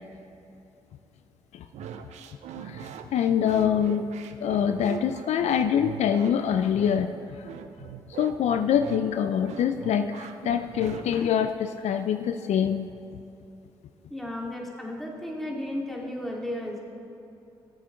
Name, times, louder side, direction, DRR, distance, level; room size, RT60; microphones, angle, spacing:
sound 1, 1.7-11.5, right 8 dB, 75° right, 0.6 m, -41 dB
voice 1, 2.6-4.1 4.4-7.5 8.1-12.9, left 8 dB, 70° left, 9 dB, 0.4 m, -25 dB
voice 2, 14.1-16.8, left 1 dB, ahead, -2 dB, 2.3 m, -34 dB
14.5 x 7.6 x 3.9 m, 2.8 s
supercardioid pair, 45°, 12 cm